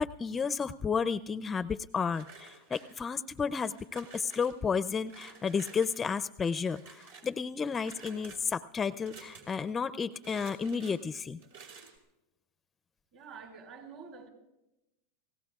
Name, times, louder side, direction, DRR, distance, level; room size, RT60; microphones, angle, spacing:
voice 1, 0.0-11.4, left 6 dB, 20° left, 13 dB, 0.4 m, -32 dB
sound 1, 2.1-3.2 3.6-4.5 5.1-6.0 6.4-7.3 7.8-8.4 9.0-9.7 10.1-11.0 11.4-12.0, right 5 dB, 75° right, 4.5 m, -51 dB
voice 2, 13.1-14.3, right 5 dB, 55° right, 3 dB, 5.3 m, -48 dB
29.5 x 18.0 x 2.4 m, 0.89 s
hypercardioid pair, 120°, 0 cm